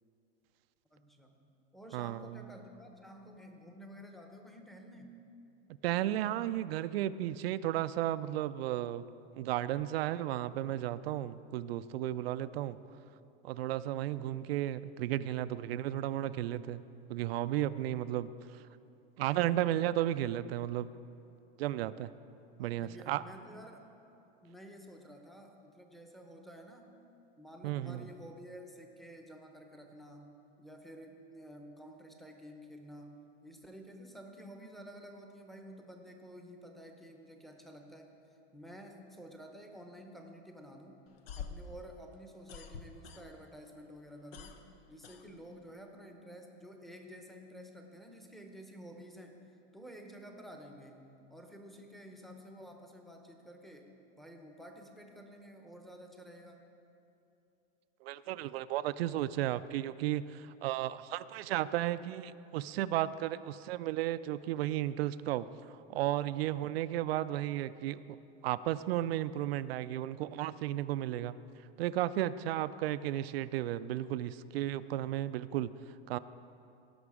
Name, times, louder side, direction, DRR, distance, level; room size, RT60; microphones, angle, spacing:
voice 1, 0.9-1.4 1.7-5.2 22.6-23.8 24.4-26.9 27.4-38.1 38.5-41.0 41.4-44.6 44.9-49.4 49.7-56.6, equal, ahead, 2 dB, 0.8 m, -51 dB
voice 2, 1.9-2.4 5.8-9.0 9.4-12.8 13.4-18.6 19.2-20.9 21.6-22.1 22.6-23.2 27.6-28.1 58.0-68.0 68.4-71.4 71.8-75.7 76.1-76.2, right 13 dB, 80° right, 14 dB, 0.5 m, -34 dB
sound 1, 41.1-43.6 43.9-45.8, left 6 dB, 75° left, 0.9 m, -47 dB
17.5 x 6.1 x 4.9 m, 2.7 s
supercardioid pair, 145°, 30 cm